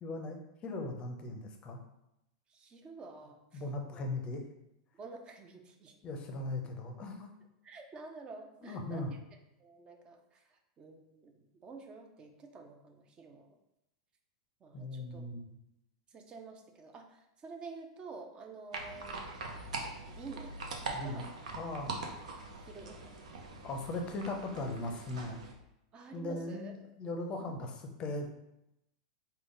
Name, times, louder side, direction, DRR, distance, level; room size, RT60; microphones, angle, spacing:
voice 1, 0.0-1.8 3.5-4.4 6.0-7.3 8.6-9.1 14.7-15.4 20.9-21.3 21.6-22.0 23.6-25.4 26.1-28.3, left 2 dB, 30° left, 4 dB, 0.5 m, -38 dB
voice 2, 2.5-3.6 3.9-4.0 4.9-6.0 7.6-9.1 9.6-13.5 14.6-15.2 16.1-19.4 20.1-20.6 21.0-21.3 22.6-23.2 25.9-26.7 27.4-27.6, right 4 dB, 25° right, 5 dB, 0.5 m, -49 dB
sound 1, 18.7-25.5, right 3 dB, 85° right, 0.6 m, -42 dB
3.5 x 2.2 x 3.7 m, 0.87 s
supercardioid pair, 130°, 4 cm